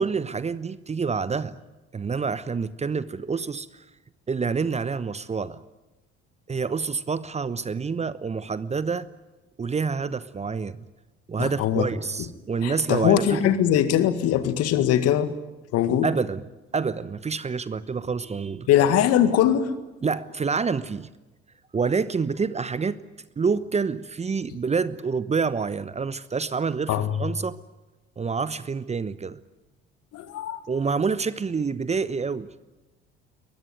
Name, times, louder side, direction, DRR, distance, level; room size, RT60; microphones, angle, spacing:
voice 1, 0.0-1.6 1.9-3.8 4.3-5.6 6.5-9.1 9.6-10.8 11.3-13.5 16.0-16.4 16.7-18.7 20.0-21.1 21.7-23.0 23.4-27.6 28.2-29.4 30.7-32.5, right 5 dB, 20° right, 17 dB, 0.9 m, -27 dB
voice 2, 11.4-11.9 12.6-15.3 15.7-16.1 18.7-19.7 26.9-27.1 30.1-30.6, left 10 dB, 55° left, 11 dB, 1.9 m, -21 dB
22.5 x 21.5 x 9.3 m, 1.1 s
figure-of-eight pair, 55°, 30 cm